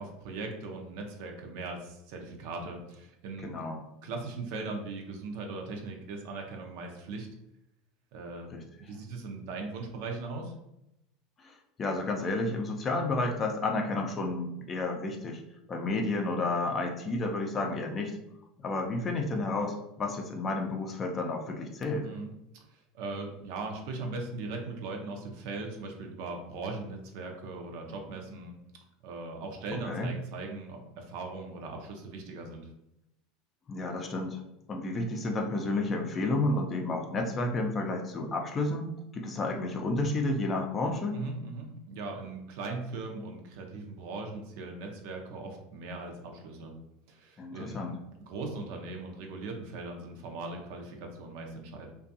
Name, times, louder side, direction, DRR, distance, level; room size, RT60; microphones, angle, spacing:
voice 1, 0.0-3.6 4.0-7.3 8.1-8.5 8.9-10.5 22.0-22.3 22.7-28.6 29.0-32.7 41.1-46.7 47.1-51.9, right 3 dB, 70° right, 2 dB, 0.5 m, -39 dB
voice 2, 3.4-3.8 8.5-8.6 11.4-15.4 15.7-18.2 18.6-22.1 29.9-30.1 33.7-34.4 34.7-41.2 47.4-47.9, left 2 dB, 30° left, 2 dB, 0.5 m, -31 dB
2.5 x 2.3 x 2.6 m, 0.86 s
supercardioid pair, 110°, 0 cm